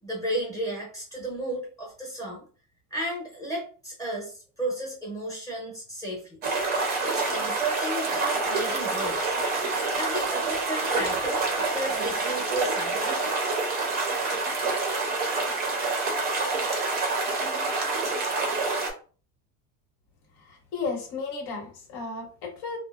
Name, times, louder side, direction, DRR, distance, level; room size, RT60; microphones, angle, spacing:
voice 1, 0.0-2.4 2.9-6.4 7.0-9.3 9.9-13.3, right 1 dB, 5° left, -3 dB, 0.7 m, -33 dB
sound 1, 6.4-18.9, right 3 dB, 20° right, 0.4 m, -27 dB
voice 2, 20.5-22.8, left 4 dB, 65° left, -1 dB, 1.1 m, -34 dB
2.5 x 2.1 x 2.3 m, 0.39 s
cardioid pair, 160°, 47 cm